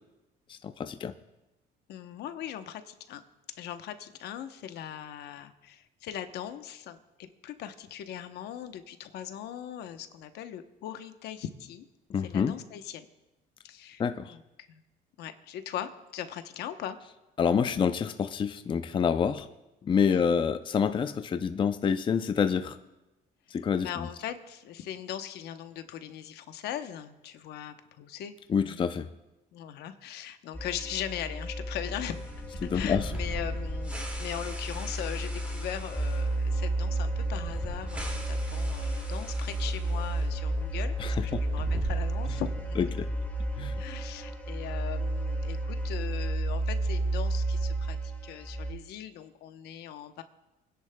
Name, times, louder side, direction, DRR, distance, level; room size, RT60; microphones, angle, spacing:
voice 1, 0.5-1.1 12.1-12.5 14.0-14.3 17.4-19.5 19.8-22.8 23.5-23.9 28.5-29.0 32.6-33.0 41.0-41.4 43.0-43.1 43.6-43.8, left 6 dB, 30° left, 10 dB, 0.5 m, -27 dB
voice 2, 1.9-3.2 3.6-11.9 12.2-13.1 13.6-14.8 15.2-17.0 20.1-20.3 23.8-28.8 29.5-42.9 43.8-50.2, left 10 dB, 75° left, 9 dB, 0.9 m, -40 dB
sound 1, 30.5-48.7, right 2 dB, 10° left, 1.7 m, -32 dB
sound 2, 32.1-40.3 40.5-40.6 41.3-42.6, right 1 dB, 10° right, 2.2 m, -41 dB
28.5 x 10.5 x 2.2 m, 0.99 s
cardioid pair, 110°, 17 cm